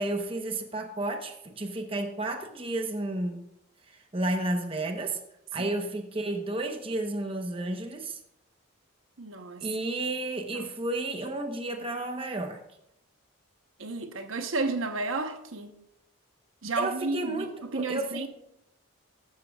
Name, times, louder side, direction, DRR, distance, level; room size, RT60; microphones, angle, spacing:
voice 1, 0.0-3.5 4.1-5.2 5.5-8.2 9.6-12.6 16.8-18.3, right 2 dB, 25° right, 1.0 m, -32 dB
voice 2, 9.2-9.7 10.5-10.7 13.8-15.7 16.6-18.3, right 3 dB, 75° right, 1.0 m, -32 dB
14.5 x 12.5 x 2.4 m
head